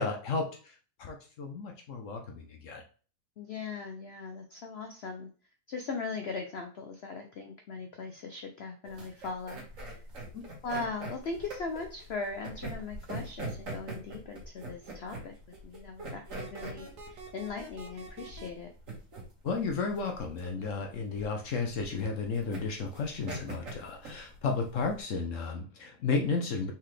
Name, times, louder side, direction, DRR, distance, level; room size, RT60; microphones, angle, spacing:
voice 1, 0.0-2.8 10.3-10.4 19.4-26.7, left 4 dB, 60° left, 3 dB, 0.9 m, -33 dB
voice 2, 3.4-5.3 5.7-10.0 10.6-15.4 15.6-18.7, left 4 dB, 85° left, 4 dB, 0.5 m, -39 dB
sound 1, 8.8-25.0, right 2 dB, 55° right, 1.7 m, -43 dB
sound 2, 16.4-18.5, right 3 dB, 75° right, 1.5 m, -46 dB
4.3 x 3.8 x 3.2 m, 0.39 s
omnidirectional pair, 1.8 m